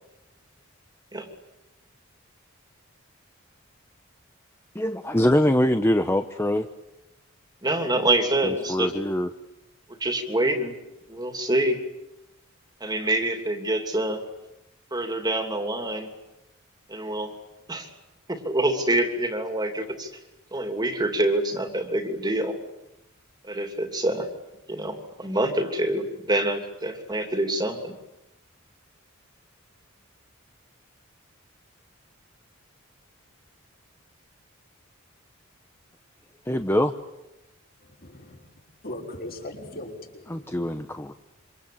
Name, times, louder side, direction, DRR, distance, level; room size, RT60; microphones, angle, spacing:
voice 1, 4.7-6.7 8.4-9.3 36.5-36.9 40.3-41.1, left 1 dB, 10° left, 8 dB, 1.0 m, -23 dB
voice 2, 7.6-8.9 10.0-10.7 11.1-11.8 12.8-14.2 14.9-16.1 16.9-17.3 17.7-17.9 18.3-20.1 20.5-22.6 23.4-24.3 24.7-27.9, right 1 dB, 20° right, 5 dB, 2.9 m, -26 dB
voice 3, 37.8-38.5 38.8-41.1, left 1 dB, 45° left, 0 dB, 6.0 m, -40 dB
27.5 x 25.5 x 8.6 m, 0.95 s
head